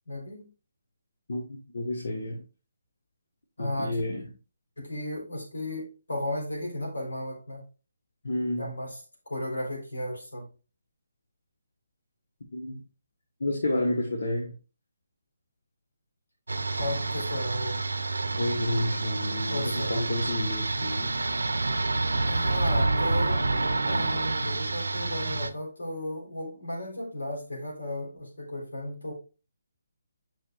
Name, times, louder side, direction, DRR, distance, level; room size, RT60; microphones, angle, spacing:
voice 1, 0.1-0.5 3.6-4.0 4.8-7.6 8.6-10.5 16.7-17.9 19.5-20.2 22.2-23.4 23.8-29.1, left 1 dB, 90° left, 3.7 m, -35 dB
voice 2, 1.3-2.4 3.6-4.3 8.2-8.7 12.5-12.8 13.4-14.5 18.3-21.2, left 1 dB, 70° left, 1.3 m, -30 dB
sound 1, 16.5-25.5, right 3 dB, 85° right, 0.6 m, -28 dB
8.6 x 5.5 x 2.4 m
figure-of-eight pair, 150°, 0 cm